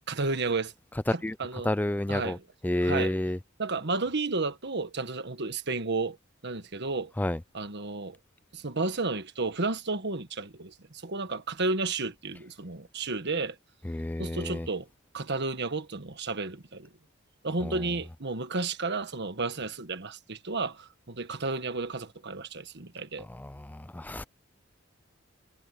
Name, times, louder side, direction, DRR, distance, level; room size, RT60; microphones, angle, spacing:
voice 1, 0.1-0.7 1.1-1.7 2.1-2.4 2.8-3.1 3.6-6.2 6.4-7.1 7.5-8.2 8.5-13.6 14.2-14.9 15.1-16.9 17.4-23.3, right 3 dB, 55° right, 1.5 m, -32 dB
voice 2, 1.6-2.4 2.6-3.4 7.2-7.4 13.8-14.7 17.6-17.8 23.2-24.2, left 1 dB, 10° left, 0.4 m, -30 dB
head